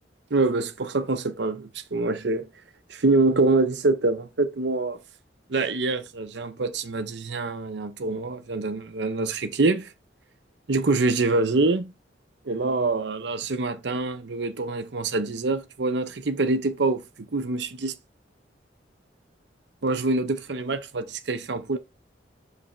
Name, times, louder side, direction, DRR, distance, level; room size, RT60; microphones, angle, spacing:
voice 1, 0.3-2.5 2.9-5.0 5.5-9.9 10.7-11.9 12.5-17.0 17.3-17.9 19.8-21.8, right 3 dB, 70° right, 0.7 m, -25 dB
5.6 x 4.1 x 5.5 m
head